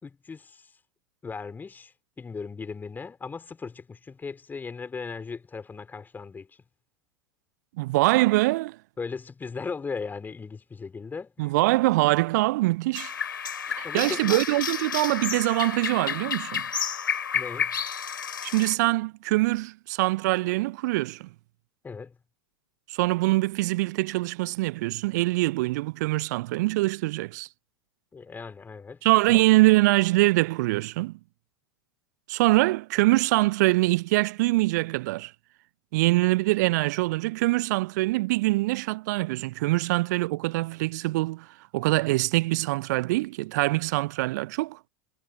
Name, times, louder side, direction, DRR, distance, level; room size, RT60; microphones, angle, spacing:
voice 1, 0.0-0.7 1.2-6.6 9.0-11.5 13.8-14.4 17.3-17.8 21.8-22.2 28.1-29.4, left 5 dB, 15° left, 4.5 m, -37 dB
voice 2, 7.8-8.8 11.4-13.1 13.8-16.6 18.4-21.3 22.9-27.5 29.0-31.2 32.3-35.3 35.9-41.5 41.7-44.8, right 20 dB, 55° right, 0.6 m, -24 dB
sound 1, 12.9-18.8, left 7 dB, 75° left, 3.0 m, -31 dB
figure-of-eight pair, 85°, 11 cm